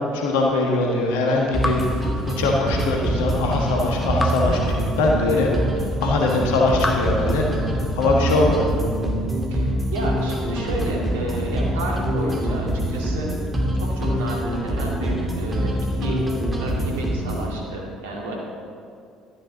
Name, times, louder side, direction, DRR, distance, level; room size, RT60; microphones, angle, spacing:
voice 1, 0.1-2.1 2.4-5.5 6.0-7.4 8.0-8.7, left 2 dB, 70° left, 0 dB, 1.4 m, -21 dB
sound 1, 1.5-17.5, right 1 dB, 20° right, 2.5 m, -25 dB
Raindrop / Drip, 1.6-3.0 4.2-5.6 6.8-8.2, left 1 dB, 10° left, 0.9 m, -32 dB
voice 2, 5.3-5.6 8.4-8.5 9.5-13.3 13.8-15.7 16.0-16.2 16.6-18.3, right 1 dB, 75° right, -2 dB, 2.1 m, -31 dB
12.5 x 11.5 x 4.0 m, 2.4 s
figure-of-eight pair, 55°, 0 cm